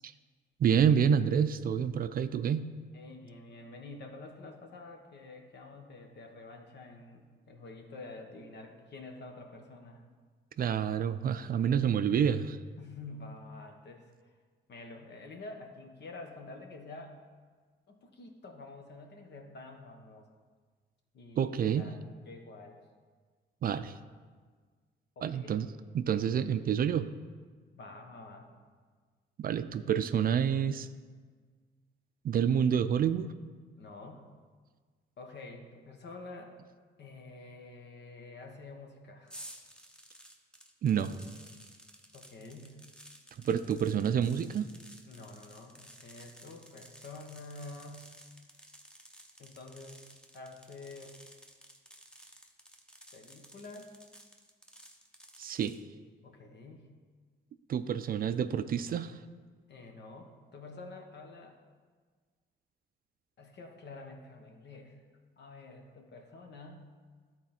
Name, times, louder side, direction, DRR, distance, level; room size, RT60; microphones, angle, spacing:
voice 1, 0.6-2.7 10.6-12.6 21.4-21.9 23.6-23.9 25.2-25.7 25.9-27.1 29.4-30.9 32.2-33.3 40.8-41.1 43.4-44.7 55.4-55.8 57.7-59.2, right 8 dB, 50° right, 12 dB, 0.4 m, -28 dB
voice 2, 2.9-10.0 12.8-14.3 14.7-17.2 17.9-20.3 21.1-22.0 22.2-22.8 25.2-25.6 27.7-28.5 33.8-34.3 35.2-36.5 37.0-39.5 42.1-42.8 45.1-48.1 49.4-50.0 50.3-51.2 53.1-53.9 56.2-56.8 59.7-61.5 63.4-65.0 65.4-66.8, left 3 dB, 60° left, 3 dB, 1.3 m, -48 dB
sound 1, 39.3-55.8, equal, 5° left, 0.9 m, -54 dB
11.5 x 4.2 x 4.4 m, 1.5 s
cardioid pair, 90°, 20 cm